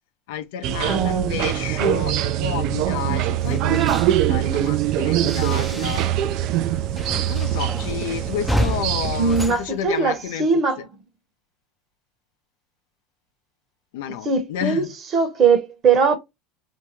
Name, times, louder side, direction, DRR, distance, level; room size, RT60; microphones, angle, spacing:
voice 1, 0.3-6.1 7.2-10.5 13.9-14.9, left 9 dB, 85° left, 0.6 m, -31 dB
sound 1, 0.6-9.5, right 12 dB, 60° right, 0.3 m, -23 dB
voice 2, 0.9-1.4 1.8-2.0 9.2-10.8 14.2-14.9 15.1-16.2, right 5 dB, 35° right, 0.9 m, -20 dB
sound 2, 3.4-6.4 6.6-10.5, equal, 5° left, 0.5 m, -31 dB
2.7 x 2.3 x 3.0 m
supercardioid pair, 120°, 0 cm